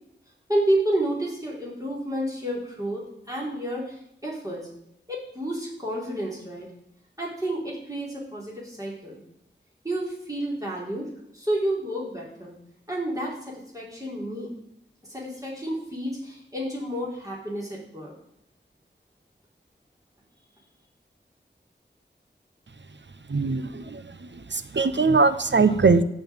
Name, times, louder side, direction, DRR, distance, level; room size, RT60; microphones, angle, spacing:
voice 1, 0.5-4.7 5.1-6.7 7.2-9.2 9.8-11.1 11.3-12.5 12.9-14.5 15.1-18.1, right 1 dB, 15° right, -4 dB, 4.2 m, -30 dB
voice 2, 23.3-26.0, right 4 dB, 70° right, 12 dB, 0.8 m, -21 dB
12.0 x 5.5 x 8.9 m, 0.79 s
wide cardioid pair, 45°, 19 cm